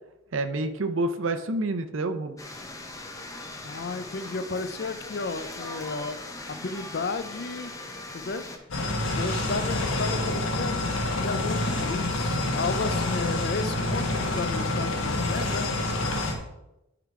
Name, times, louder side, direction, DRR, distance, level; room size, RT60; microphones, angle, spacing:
voice 1, 0.3-2.4, right 2 dB, 75° right, 9 dB, 0.6 m, -28 dB
sound 1, 2.4-8.6, left 2 dB, 15° left, 0.8 m, -40 dB
voice 2, 3.6-7.7 8.1-8.4 9.2-10.9 11.1-15.7, left 4 dB, 50° left, 11 dB, 0.5 m, -33 dB
sound 2, 8.7-16.3, left 2 dB, 80° left, 1.5 m, -27 dB
11.0 x 3.9 x 4.7 m, 0.91 s
head